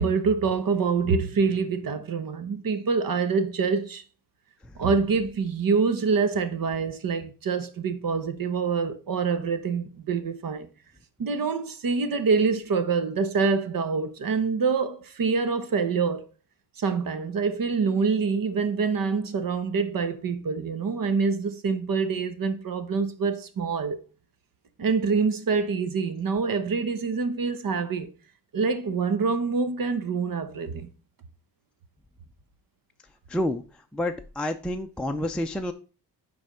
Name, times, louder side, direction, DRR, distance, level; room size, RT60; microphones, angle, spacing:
voice 1, 0.0-4.0 4.8-10.7 11.2-16.2 16.8-24.0 24.8-28.1 28.5-30.9, right 5 dB, 55° right, 1.0 m, -26 dB
voice 2, 33.3-33.6 33.9-35.7, left 1 dB, 5° left, 0.5 m, -28 dB
9.7 x 3.5 x 5.0 m
cardioid pair, 110°, 41 cm